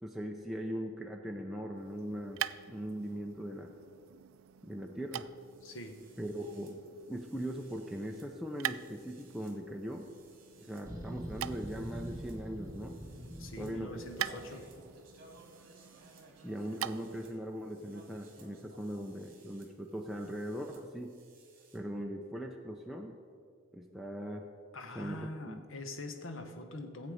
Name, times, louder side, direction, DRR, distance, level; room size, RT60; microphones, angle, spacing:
voice 1, 0.0-3.8 4.6-5.3 6.2-6.8 7.1-10.1 10.6-13.0 13.6-14.4 16.4-21.2 21.7-23.2 23.7-24.5 25.0-25.6, equal, ahead, 0 dB, 0.5 m, -40 dB
sound 1, 1.7-17.3, right 12 dB, 90° right, 0.3 m, -45 dB
sound 2, 5.4-21.8, right 2 dB, 45° right, 1.8 m, -61 dB
voice 2, 5.6-6.0 13.4-14.7 24.7-27.1, left 1 dB, 80° left, 6 dB, 1.1 m, -44 dB
sound 3, 10.9-15.1, equal, 15° right, 1.2 m, -45 dB
15.0 x 7.9 x 4.9 m, 2.3 s
head